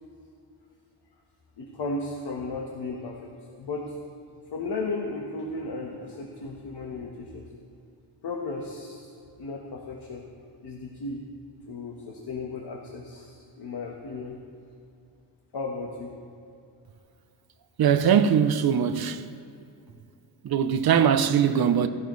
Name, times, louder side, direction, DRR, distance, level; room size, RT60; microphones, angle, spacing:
voice 1, 1.6-3.2 3.6-3.9 4.5-7.4 8.2-9.1 9.4-10.2 10.6-11.2 11.7-14.4 15.5-16.1, left 3 dB, 60° left, 1.4 m, -35 dB
voice 2, 17.8-19.2 20.4-21.9, right 8 dB, 55° right, 0.7 m, -21 dB
16.0 x 16.0 x 3.2 m
wide cardioid pair, 180°, 44 cm